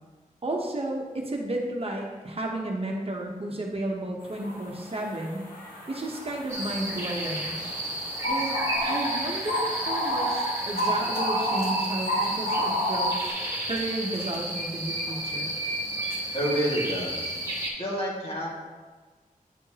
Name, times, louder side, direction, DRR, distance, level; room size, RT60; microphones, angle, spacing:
voice 1, 0.4-5.4 5.9-7.6 8.3-8.6 8.9-13.4 13.6-15.5, right 1 dB, 40° right, 0 dB, 0.9 m, -32 dB
sound 1, 4.4-4.5 4.9-13.3, equal, 90° left, 1.6 m, -30 dB
sound 2, 6.5-17.7, right 1 dB, 20° right, 1.6 m, -32 dB
voice 2, 16.3-17.3 17.8-18.5, equal, 40° left, -6 dB, 2.1 m, -28 dB
9.2 x 4.4 x 2.9 m, 1.3 s
wide cardioid pair, 100°, 14 cm